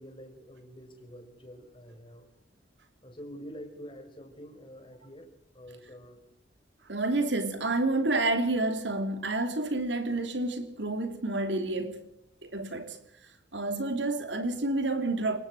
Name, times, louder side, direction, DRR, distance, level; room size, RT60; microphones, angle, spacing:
voice 1, 0.0-2.3 3.0-5.3 5.5-6.2, equal, 25° left, 4.9 m, -47 dB
voice 2, 6.9-12.1 12.4-13.0 13.5-15.4, right 2 dB, 65° right, 3.0 m, -29 dB
29.0 x 18.5 x 4.9 m
head